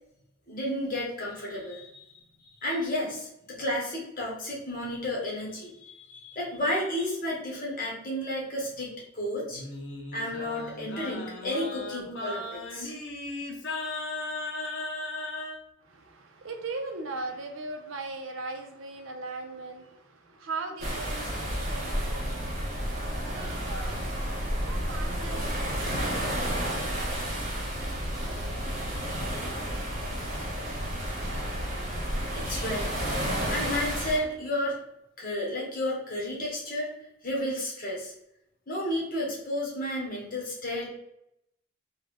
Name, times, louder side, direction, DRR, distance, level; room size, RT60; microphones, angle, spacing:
voice 1, 0.5-2.2 2.6-9.6 10.1-12.9 32.3-33.2 33.5-34.8 35.2-36.9 37.2-38.1 38.7-40.9, left 1 dB, 45° left, -3 dB, 1.1 m, -32 dB
Singing, 9.5-15.6, left 2 dB, 65° left, 0.6 m, -36 dB
voice 2, 15.8-24.1 24.6-27.4, right 3 dB, 90° right, 4 dB, 0.6 m, -39 dB
sound 1, 20.8-34.2, equal, 40° right, 1.0 m, -31 dB
3.7 x 2.3 x 3.2 m, 0.80 s
head